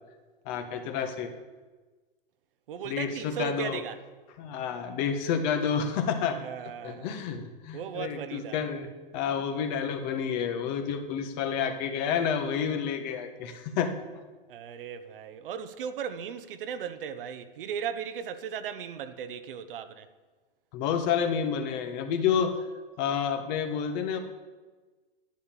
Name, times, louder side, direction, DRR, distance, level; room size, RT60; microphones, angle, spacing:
voice 1, 0.5-1.3 2.8-3.8 4.4-6.4 6.8-14.0 20.7-22.7 23.0-24.2, left 7 dB, 50° left, 1.7 m, -29 dB
voice 2, 2.7-4.0 6.3-7.1 7.7-8.6 14.5-20.1, right 8 dB, 65° right, 1.1 m, -37 dB
10.5 x 10.0 x 7.4 m
hypercardioid pair, 115°, 29 cm